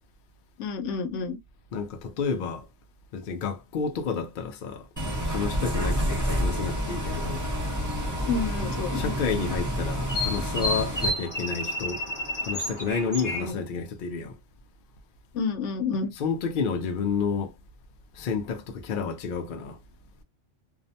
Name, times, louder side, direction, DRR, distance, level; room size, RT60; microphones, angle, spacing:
voice 1, 0.6-1.4 8.3-9.1 13.4-13.5 15.3-16.1, left 5 dB, 80° left, 0.9 m, -29 dB
voice 2, 1.7-2.7 3.1-4.9 5.3-7.4 8.9-12.0 12.4-14.4 16.1-17.6 18.1-19.8, left 5 dB, 60° left, 0.5 m, -30 dB
Bus, 5.0-11.1, equal, 15° right, 0.7 m, -29 dB
sound 1, 5.1-13.5, left 1 dB, 20° left, 0.8 m, -34 dB
2.5 x 2.1 x 2.7 m
omnidirectional pair, 1.2 m